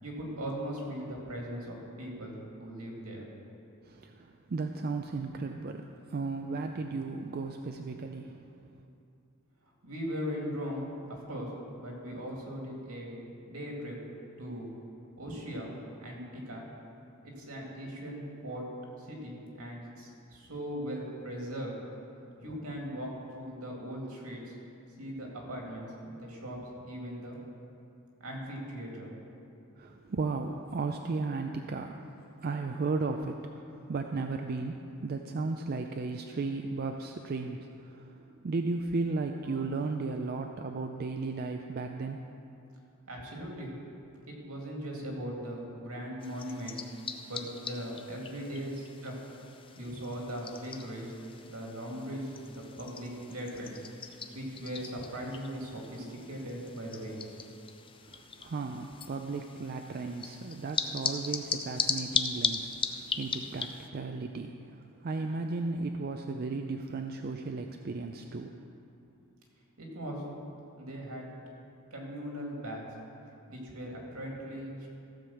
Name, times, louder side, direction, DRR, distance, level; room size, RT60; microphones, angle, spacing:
voice 1, 0.0-3.3 9.8-11.5 11.7-14.0 14.4-14.7 15.2-16.7 17.2-18.7 19.0-21.8 22.4-24.6 25.0-27.4 28.2-29.2 43.1-43.7 44.3-46.8 47.3-49.1 49.8-51.1 51.5-53.8 54.3-57.2 69.8-70.2 70.8-71.3 71.9-72.8 73.5-74.9, equal, 75° right, -1 dB, 2.3 m, -39 dB
voice 2, 3.8-8.5 29.8-42.2 58.1-68.6, right 3 dB, 45° right, 4 dB, 0.4 m, -35 dB
sound 1, 46.2-63.9, left 6 dB, 25° left, 0.5 m, -38 dB
15.0 x 5.2 x 7.0 m, 2.7 s
head